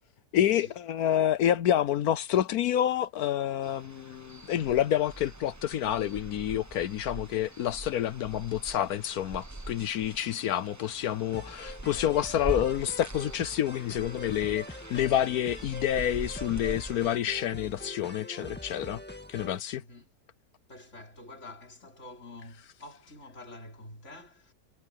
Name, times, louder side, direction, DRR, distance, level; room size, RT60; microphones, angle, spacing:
voice 1, 0.3-19.0 19.3-19.8, left 11 dB, 75° left, 1.2 m, -28 dB
sound 1, 3.6-17.2, right 2 dB, 15° right, 1.0 m, -43 dB
sound 2, 11.3-19.6, left 1 dB, 5° left, 1.6 m, -44 dB
voice 2, 19.8-20.1 20.7-24.5, left 2 dB, 50° left, 5.5 m, -47 dB
omnidirectional pair, 1.6 m